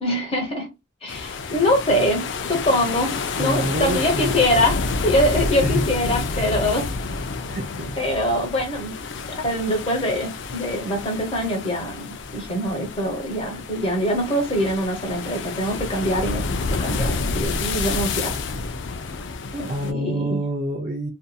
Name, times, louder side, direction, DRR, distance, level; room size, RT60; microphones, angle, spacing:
voice 1, 0.0-0.7 1.0-6.9 8.0-8.9 9.3-12.1 12.3-16.4 16.8-18.4 19.5-20.4, equal, 30° left, 0.9 m, -23 dB
sound 1, 1.1-19.9, left 4 dB, 65° left, 0.4 m, -29 dB
voice 2, 3.4-4.3 5.6-5.8 7.5-8.2 19.7-21.1, right 1 dB, 45° right, 0.5 m, -27 dB
2.6 x 2.6 x 2.3 m
head